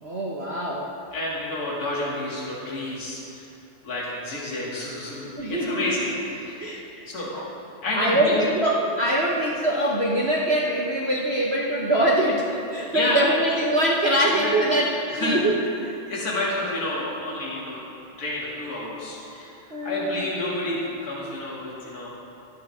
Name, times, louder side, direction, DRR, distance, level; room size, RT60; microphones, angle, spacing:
voice 1, 0.0-0.9 5.4-5.9 6.6-7.0 7.3-7.4 8.0-15.5 19.7-20.2, right 1 dB, 40° right, -3 dB, 1.0 m, -23 dB
voice 2, 1.1-3.5 3.8-6.6 7.1-7.4 7.8-8.4 12.9-13.4 14.1-14.5 15.1-15.7 16.1-17.8 18.2-22.1, left 1 dB, 45° left, -6 dB, 3.0 m, -29 dB
26.0 x 9.3 x 3.6 m, 2.7 s
omnidirectional pair, 2.4 m